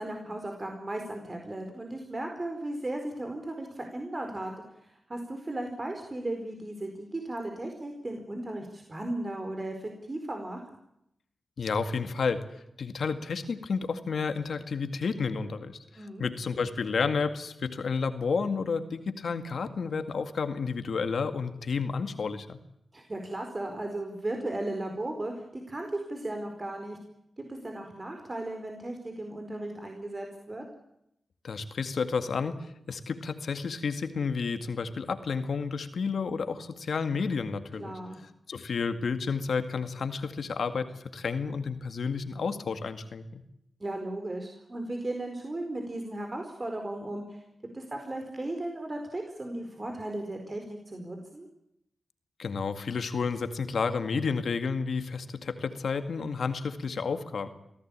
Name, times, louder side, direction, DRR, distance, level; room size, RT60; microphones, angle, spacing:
voice 1, 0.0-4.5 5.1-10.6 16.0-16.2 22.9-27.0 27.4-30.6 37.8-38.2 43.8-47.4 47.7-51.5, right 1 dB, 35° right, 4 dB, 4.6 m, -36 dB
voice 2, 11.6-12.4 12.8-22.6 31.4-32.6 32.9-38.0 38.5-43.4 52.4-57.5, left 5 dB, 75° left, 9 dB, 2.0 m, -31 dB
24.0 x 16.0 x 8.8 m, 0.79 s
cardioid pair, 45°, 0 cm